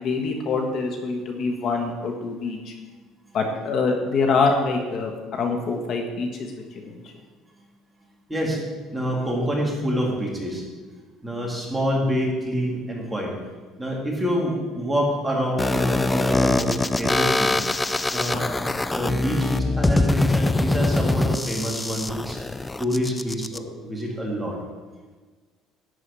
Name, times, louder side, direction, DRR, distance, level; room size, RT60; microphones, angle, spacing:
voice 1, 0.0-2.7 3.3-5.1 5.4-6.5 6.8-7.0, left 4 dB, 50° left, 2 dB, 1.4 m, -25 dB
voice 2, 8.3-8.6 8.9-10.6 11.2-13.3 13.8-17.6 18.1-22.4 22.8-24.6, equal, 5° right, -2 dB, 2.7 m, -26 dB
sound 1, 15.6-23.6, left 2 dB, 10° left, 0.4 m, -23 dB
11.5 x 4.8 x 8.4 m, 1.4 s
cardioid pair, 125°, 0 cm